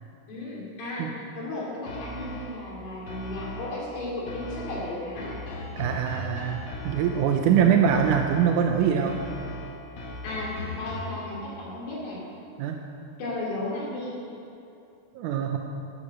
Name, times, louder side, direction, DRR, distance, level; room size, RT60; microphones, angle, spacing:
voice 1, 0.3-5.3 7.5-7.8 10.2-12.2 13.2-14.2, left 2 dB, 80° left, -5 dB, 4.8 m, -34 dB
sound 1, 1.9-2.7 3.1-3.9 4.3-7.5 7.9-8.7 9.1-11.3, left 1 dB, 55° left, 2.3 m, -38 dB
voice 2, 5.8-6.6 6.8-9.2 12.6-12.8 15.2-15.6, right 8 dB, 80° right, 3 dB, 1.9 m, -23 dB
12.5 x 11.5 x 6.6 m, 2.7 s
omnidirectional pair, 4.2 m